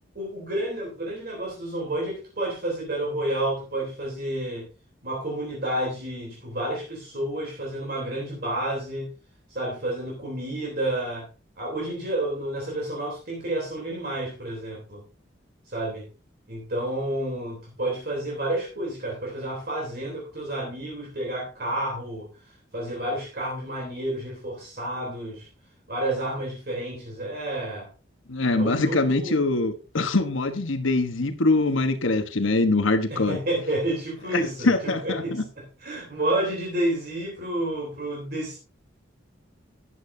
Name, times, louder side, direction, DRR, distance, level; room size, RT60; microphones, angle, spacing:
voice 1, 0.2-4.7 5.0-9.1 9.5-11.3 11.6-15.0 15.7-16.1 16.5-22.3 22.7-25.5 25.9-27.9 28.5-29.4 33.1-35.4 35.8-38.6, right 1 dB, 50° right, 3.4 m, -30 dB
voice 2, 28.3-33.4 34.3-35.4, left 2 dB, 85° left, 1.2 m, -23 dB
13.5 x 11.0 x 2.7 m
head